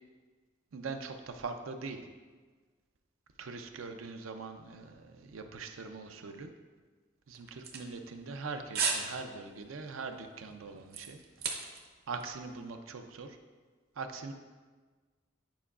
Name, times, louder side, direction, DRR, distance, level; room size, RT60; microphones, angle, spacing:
voice 1, 0.7-2.1 3.4-6.5 7.3-11.2 12.1-13.4 14.0-14.3, right 4 dB, 90° right, 6 dB, 0.5 m, -42 dB
sound 1, 7.3-8.4 8.7-9.1 9.4-9.7 10.2-11.9 12.2-12.3, right 6 dB, 50° right, 0.7 m, -34 dB
9.1 x 4.6 x 2.4 m, 1.4 s
head